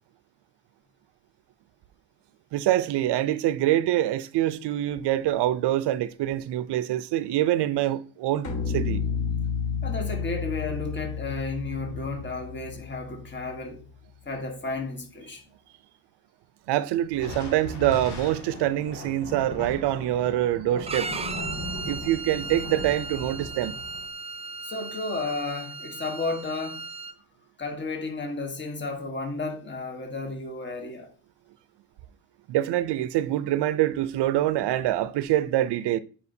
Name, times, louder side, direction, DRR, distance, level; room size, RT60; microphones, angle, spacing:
voice 1, 2.5-9.0 16.7-21.2 21.8-23.8 32.5-36.0, right 13 dB, 75° right, 0.5 m, -25 dB
sound 1, 8.4-13.7, left 6 dB, 45° left, 1.4 m, -31 dB
voice 2, 9.8-13.8 14.2-15.4 24.6-26.9 27.6-31.1, left 3 dB, 25° left, 1.3 m, -33 dB
sound 2, 9.9-13.2 17.1-24.1, left 1 dB, 70° left, 2.1 m, -39 dB
Bowed string instrument, 20.9-27.1, right 4 dB, 15° right, 0.3 m, -36 dB
8.3 x 4.9 x 2.7 m
cardioid pair, 125°, 41 cm